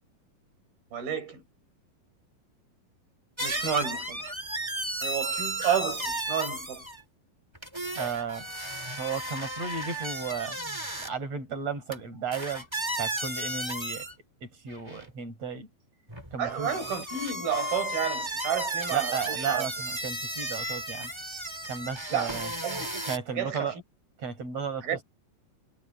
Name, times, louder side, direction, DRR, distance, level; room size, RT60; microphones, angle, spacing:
voice 1, 0.9-1.4 3.4-4.2 5.0-6.8 16.4-19.7 22.1-22.9 23.3-23.8 24.8-25.0, right 8 dB, 75° right, 7.4 m, -31 dB
sound 1, 3.4-7.0 7.5-11.1 11.9-12.0 12.3-14.1 14.7-15.1 16.1-23.2, right 1 dB, 10° right, 2.4 m, -34 dB
voice 2, 8.0-8.5 9.0-10.6 11.0-12.7 13.0-14.1 14.4-15.7 16.3-16.8 18.9-21.1 21.7-22.5 23.1-23.7 24.2-25.0, right 6 dB, 45° right, 5.9 m, -34 dB
omnidirectional pair, 4.3 m